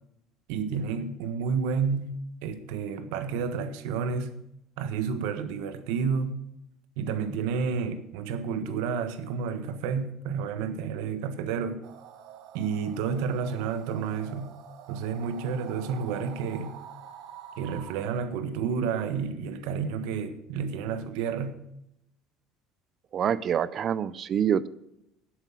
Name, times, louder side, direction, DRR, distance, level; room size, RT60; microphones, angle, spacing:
voice 1, 0.5-4.3 4.8-6.4 7.0-11.8 12.5-14.5 14.9-16.8 17.6-21.6, right 6 dB, 85° right, 1.3 m, -30 dB
sound 1, 11.8-18.0, right 10 dB, 60° right, 1.2 m, -46 dB
voice 2, 23.1-24.7, right 8 dB, 30° right, 0.4 m, -26 dB
11.0 x 8.0 x 6.1 m
cardioid pair, 175°, 0 cm